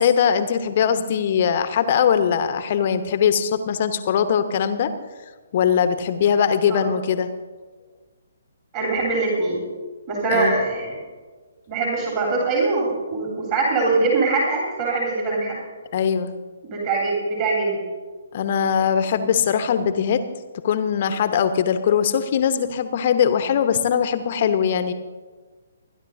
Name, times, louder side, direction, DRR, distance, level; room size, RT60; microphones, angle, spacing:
voice 1, 0.0-4.9 5.5-7.3 10.3-10.5 15.9-16.3 18.3-20.2 20.5-24.9, left 8 dB, 40° left, 10 dB, 0.9 m, -21 dB
voice 2, 8.7-9.6 10.1-11.0 11.7-15.6 16.6-17.8, right 3 dB, 35° right, -3 dB, 3.3 m, -22 dB
29.5 x 11.0 x 2.6 m, 1.4 s
figure-of-eight pair, 130°, 0 cm